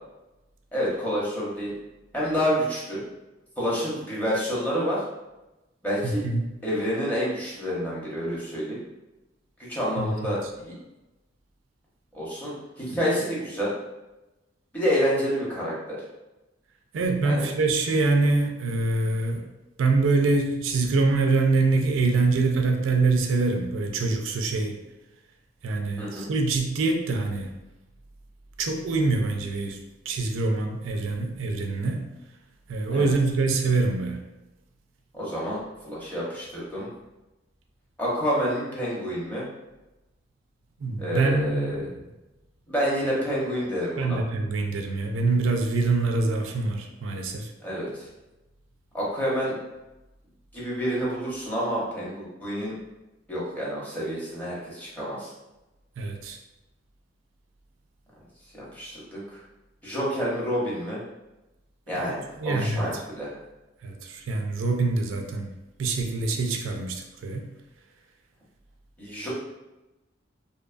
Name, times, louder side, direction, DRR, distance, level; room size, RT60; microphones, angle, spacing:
voice 1, 0.7-1.7 2.1-3.0 3.6-5.0 5.8-6.2 6.6-8.8 9.6-10.7 12.1-13.7 14.7-16.0 17.2-17.5 26.0-26.3 32.9-33.1 35.1-35.6 35.8-36.9 38.0-39.5 41.0-41.8 42.7-44.2 47.6-48.1 48.9-49.5 50.5-52.7 53.3-55.3 58.5-59.4 59.8-61.0 61.9-63.3 69.0-69.3, equal, 10° left, -7 dB, 0.7 m, -28 dB
voice 2, 6.0-6.5 10.0-10.4 16.9-19.5 19.8-24.8 25.6-27.5 28.6-29.8 30.1-32.0 32.7-34.2 40.8-41.9 44.0-47.5 56.0-56.4 61.9-62.9 63.8-65.5 65.8-67.5, right 3 dB, 85° right, 3 dB, 0.4 m, -25 dB
2.6 x 2.3 x 2.4 m, 1.0 s
head